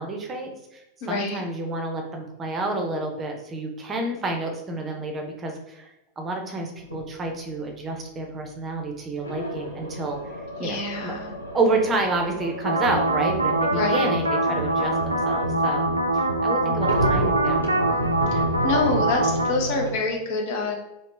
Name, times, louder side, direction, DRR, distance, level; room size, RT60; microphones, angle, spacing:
voice 1, 0.0-5.9 6.2-10.2 10.6-11.1 11.5-17.7, right 2 dB, 25° right, 2 dB, 0.6 m, -29 dB
voice 2, 1.0-1.4 10.6-11.3 13.7-14.1 18.3-20.8, left 3 dB, 50° left, 1 dB, 0.9 m, -27 dB
sound 1, 6.8-7.0 9.2-19.9, equal, 85° left, 0.8 m, -32 dB
sound 2, 12.6-19.5, right 2 dB, 80° right, 0.4 m, -23 dB
3.1 x 2.9 x 3.3 m, 0.89 s
figure-of-eight pair, 90°, 0 cm